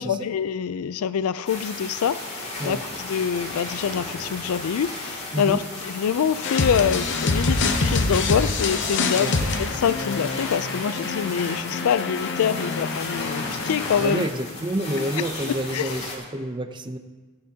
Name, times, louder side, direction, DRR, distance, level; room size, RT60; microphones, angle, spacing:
voice 1, 0.0-9.4 9.7-14.2 15.2-16.0, left 7 dB, 80° left, 16 dB, 0.4 m, -25 dB
sound 1, 1.4-16.2, left 2 dB, 30° left, 2.4 m, -35 dB
sound 2, 6.4-14.3, left 3 dB, 55° left, 0.8 m, -26 dB
Crash cymbal, 8.8-11.5, left 1 dB, 5° right, 2.5 m, -45 dB
voice 2, 14.0-17.0, right 1 dB, 20° right, 8 dB, 0.6 m, -28 dB
15.5 x 9.9 x 2.8 m, 1.4 s
head